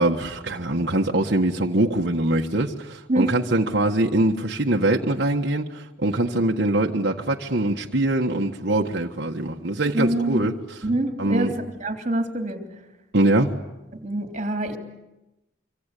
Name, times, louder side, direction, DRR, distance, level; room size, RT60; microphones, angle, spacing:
voice 1, 0.0-10.5 11.2-11.5 13.1-13.5, right 1 dB, 55° right, 0 dB, 1.5 m, -23 dB
voice 2, 9.9-10.4 10.8-12.6 13.9-14.8, right 1 dB, 35° right, 4 dB, 3.2 m, -25 dB
26.0 x 25.0 x 8.4 m, 1.0 s
head